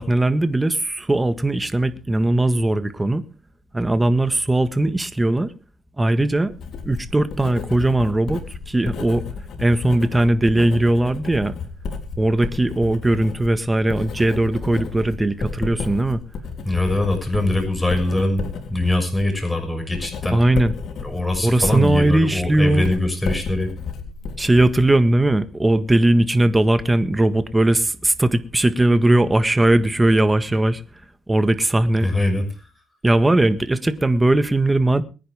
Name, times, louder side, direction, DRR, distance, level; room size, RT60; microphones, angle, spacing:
voice 1, 0.0-3.2 3.7-5.5 6.0-6.5 6.8-9.2 9.6-11.6 12.2-16.2 20.3-20.7 21.4-22.9 24.4-30.8 31.3-32.1 33.0-35.0, right 1 dB, 15° right, 1.6 m, -19 dB
Writing, 6.5-25.3, left 5 dB, 65° left, 3.5 m, -33 dB
voice 2, 16.6-20.4 21.0-23.7 32.0-32.5, left 1 dB, 10° left, 6.4 m, -22 dB
23.5 x 10.0 x 3.6 m
cardioid pair, 90°, 0 cm